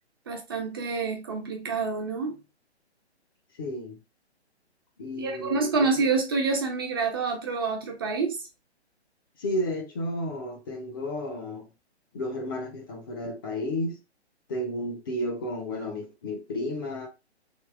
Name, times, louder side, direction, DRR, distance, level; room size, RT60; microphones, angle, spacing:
voice 1, 0.3-2.4 5.1-8.4, right 4 dB, 20° right, 0.6 m, -27 dB
voice 2, 3.6-4.0 5.0-5.9 9.4-11.6 12.1-14.0 14.5-17.1, left 1 dB, 20° left, 0.6 m, -32 dB
3.6 x 2.8 x 4.6 m
figure-of-eight pair, 135°, 34 cm